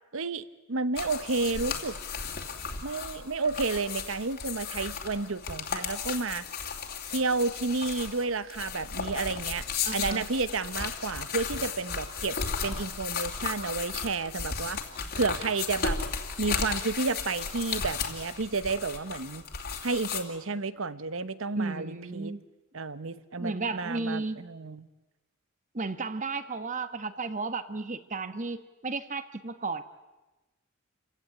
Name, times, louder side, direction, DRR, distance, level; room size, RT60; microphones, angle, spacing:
voice 1, 0.1-2.0 2.8-6.4 7.1-9.6 9.9-12.4 12.6-14.8 15.2-16.0 16.4-19.4 19.8-22.3 22.7-24.9, right 3 dB, 70° right, 14 dB, 1.0 m, -31 dB
sound 1, 1.0-20.2, left 5 dB, 50° left, 2.8 m, -35 dB
voice 2, 9.8-10.2 21.5-22.4 23.4-24.5 25.7-29.8, right 3 dB, 35° right, 11 dB, 1.3 m, -34 dB
28.5 x 16.5 x 9.9 m, 1.1 s
head